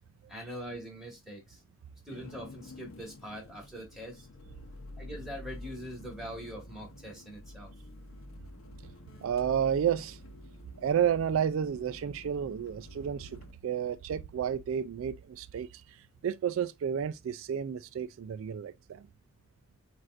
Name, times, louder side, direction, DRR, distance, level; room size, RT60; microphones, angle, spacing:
voice 1, 0.3-1.6 2.1-4.3 5.0-7.7, equal, ahead, 1.9 m, -43 dB
sound 1, 2.1-13.5, left 1 dB, 70° left, 0.7 m, -49 dB
voice 2, 9.2-10.2 10.8-16.0 16.2-19.0, right 8 dB, 75° right, 0.3 m, -31 dB
7.5 x 2.5 x 2.5 m
head